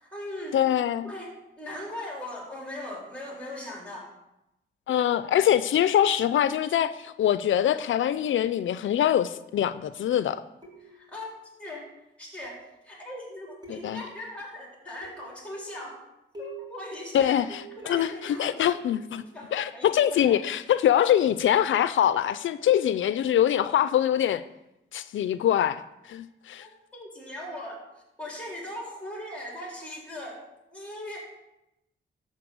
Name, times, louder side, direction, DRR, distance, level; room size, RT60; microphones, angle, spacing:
voice 1, 0.0-0.6 1.0-4.1 10.8-11.3 11.6-11.9 12.2-16.0 16.4-17.3 17.8-18.6 19.2-20.4 26.6-27.8 28.2-30.4 30.7-31.2, left 1 dB, 5° left, -2 dB, 4.0 m, -39 dB
voice 2, 0.5-1.1 4.9-10.4 13.7-14.0 17.1-19.2 19.5-24.4 24.9-25.8 26.1-26.6, left 10 dB, 85° left, 13 dB, 0.4 m, -24 dB
sound 1, 10.6-11.2 12.4-12.8 13.6-14.2 15.0-15.5 16.3-16.8 17.5-19.1 20.2-20.6 22.1-22.3, right 3 dB, 20° right, 3.1 m, -46 dB
12.0 x 4.3 x 7.7 m, 0.90 s
wide cardioid pair, 100°, 20 cm